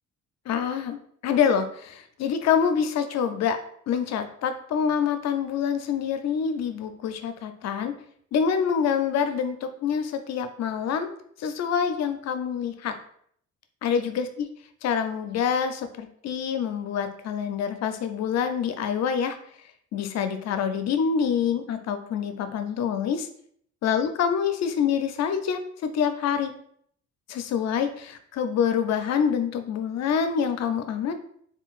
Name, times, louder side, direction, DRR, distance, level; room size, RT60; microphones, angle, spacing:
voice 1, 0.5-1.0 1.2-3.6 3.9-7.9 8.3-11.1 11.4-12.9 13.8-14.3 14.8-19.4 19.9-23.3 23.8-26.5 27.3-31.1, left 7 dB, 60° left, 9 dB, 0.5 m, -26 dB
3.7 x 2.2 x 2.4 m, 0.65 s
cardioid pair, 90°, 30 cm